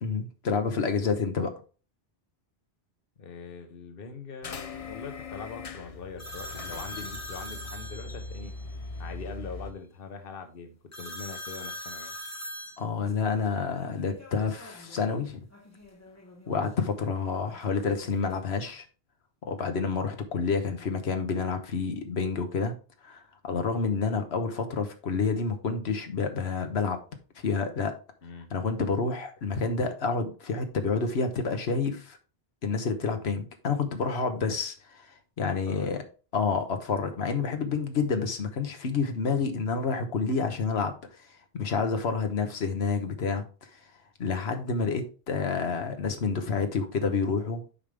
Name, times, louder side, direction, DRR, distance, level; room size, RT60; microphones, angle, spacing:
voice 1, 0.0-1.5 12.8-15.4 16.5-18.9 19.4-22.7 23.0-27.0 27.4-27.9 28.5-32.2 32.6-36.0 36.3-41.3 41.5-43.8 44.2-47.6, left 5 dB, 90° left, 6 dB, 1.3 m, -29 dB
voice 2, 3.2-8.5 9.0-12.1 28.2-28.5 35.7-36.0, left 5 dB, 65° left, 7 dB, 1.2 m, -42 dB
sound 1, 4.4-9.7, left 4 dB, 40° left, 0.6 m, -40 dB
sound 2, 6.2-8.6 10.9-15.1 15.5-16.7 17.5-18.4, equal, 15° left, 1.1 m, -42 dB
8.9 x 5.2 x 3.4 m, 0.36 s
omnidirectional pair, 1.0 m